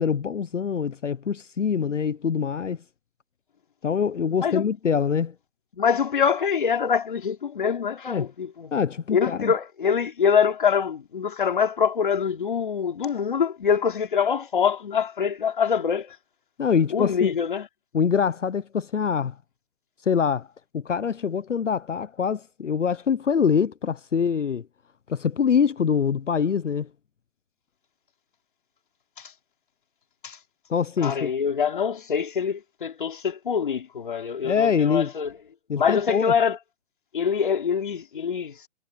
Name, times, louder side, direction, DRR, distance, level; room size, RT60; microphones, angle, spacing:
voice 1, 0.0-2.8 3.8-5.3 8.1-8.3 8.7-9.5 16.6-17.3 17.9-19.3 20.0-20.5 20.7-24.6 25.1-26.9 30.7-31.3 34.4-35.1 35.7-36.3, left 6 dB, 65° left, 1.1 m, -24 dB
voice 2, 5.7-8.7 9.1-16.2 16.9-17.7 29.2-29.3 30.2-30.4 31.0-35.3 35.7-36.6 37.1-38.6, left 7 dB, 40° left, 3.2 m, -24 dB
hypercardioid pair, 175°, 39 cm